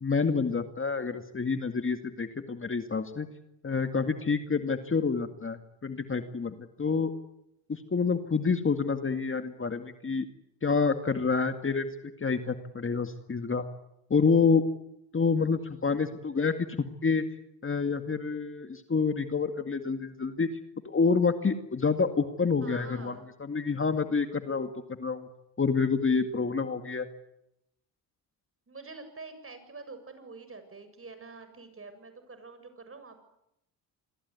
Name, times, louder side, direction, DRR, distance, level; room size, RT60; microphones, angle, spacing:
voice 1, 0.0-3.3 3.6-7.1 7.7-10.3 10.6-11.9 12.2-13.6 14.1-14.6 15.1-16.7 17.0-17.2 17.6-20.5 20.8-24.7 25.0-25.3 25.6-27.1, left 5 dB, 25° left, 8 dB, 2.2 m, -28 dB
voice 2, 22.6-23.2 28.7-33.3, right 3 dB, 30° right, 9 dB, 7.5 m, -46 dB
27.5 x 22.0 x 9.7 m, 0.84 s
supercardioid pair, 75°, 45 cm